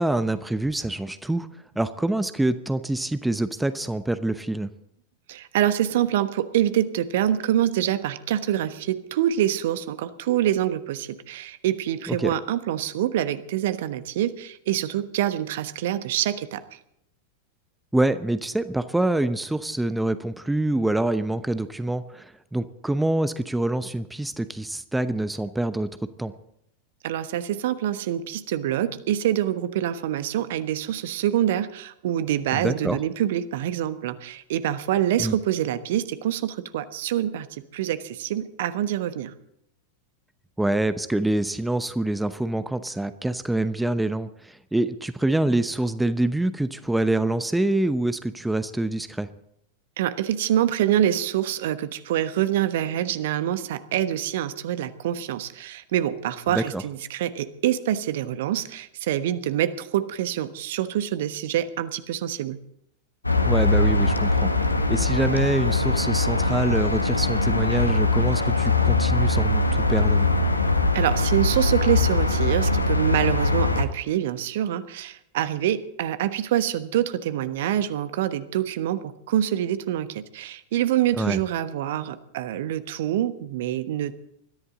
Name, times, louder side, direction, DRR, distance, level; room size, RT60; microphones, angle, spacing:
voice 1, 0.0-1.5 1.8-4.7 12.1-12.3 17.9-25.9 26.2-26.3 32.5-33.0 35.2-35.4 40.6-49.3 56.5-56.8 63.4-64.5 64.9-70.3 81.2-81.4, right 1 dB, 5° right, 12 dB, 0.8 m, -25 dB
voice 2, 5.3-16.6 27.0-39.3 50.0-62.6 70.9-84.1, right 11 dB, 55° right, 12 dB, 1.2 m, -26 dB
sound 1, 63.2-73.8, left 2 dB, 85° left, 1.6 m, -22 dB
21.5 x 14.0 x 3.9 m, 0.74 s
figure-of-eight pair, 90°, 0 cm